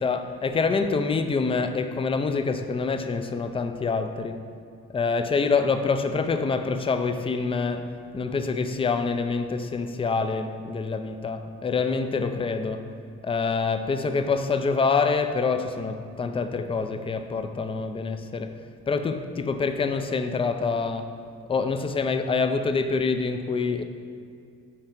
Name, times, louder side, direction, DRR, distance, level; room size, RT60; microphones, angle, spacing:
voice 1, 0.0-4.4 4.9-12.8 13.2-18.5 18.9-21.2 21.5-23.8, left 4 dB, 20° left, 8 dB, 0.4 m, -26 dB
5.7 x 4.6 x 5.1 m, 2.3 s
cardioid pair, 90°, 30 cm